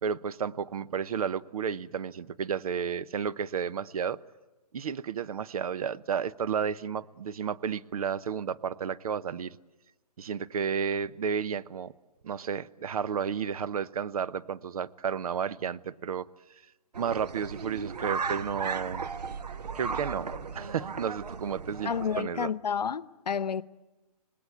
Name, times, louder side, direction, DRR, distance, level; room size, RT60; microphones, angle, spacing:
voice 1, 0.0-4.2 4.7-9.6 10.2-11.9 12.2-16.3 17.0-19.0 19.7-22.5, right 7 dB, 65° right, 0.9 m, -32 dB
sound 1, 16.9-22.2, right 5 dB, 85° right, 1.3 m, -36 dB
voice 2, 21.8-23.6, left 7 dB, 90° left, 0.8 m, -30 dB
26.0 x 19.5 x 9.5 m
hypercardioid pair, 145°, 20 cm